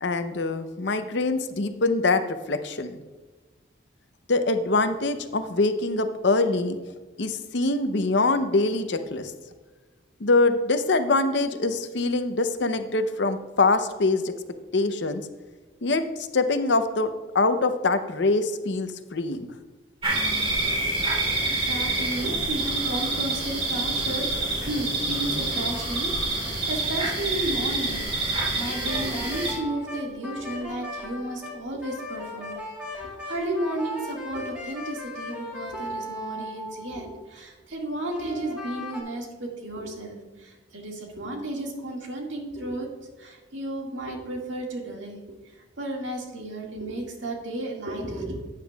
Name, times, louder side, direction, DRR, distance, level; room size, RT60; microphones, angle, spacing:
voice 1, 0.0-2.2 2.5-3.0 4.3-6.8 7.2-9.3 10.2-14.3 14.7-15.2 15.8-19.5, left 3 dB, 60° left, 9 dB, 0.7 m, -24 dB
sound 1, 20.0-29.6, right 2 dB, 30° right, 3.2 m, -27 dB
voice 2, 21.5-24.3 24.6-42.9 43.2-48.4, right 1 dB, 70° right, 0 dB, 1.9 m, -33 dB
sound 2, 28.7-37.2 38.1-39.0, left 1 dB, 5° right, 1.8 m, -37 dB
12.5 x 9.2 x 2.3 m, 1.3 s
head